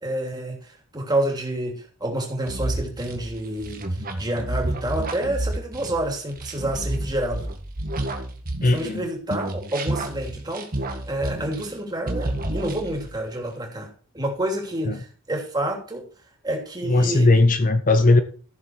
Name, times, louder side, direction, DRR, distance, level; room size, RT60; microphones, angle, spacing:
voice 1, 0.0-7.5 8.6-16.0 16.4-17.3, right 1 dB, 20° right, 2.9 m, -29 dB
sound 1, 2.5-9.0 9.3-11.8 12.1-13.1, right 1 dB, 40° right, 1.7 m, -30 dB
voice 2, 8.6-9.1 14.9-15.0 16.9-18.2, left 2 dB, 35° left, 0.8 m, -18 dB
14.0 x 7.0 x 4.6 m
head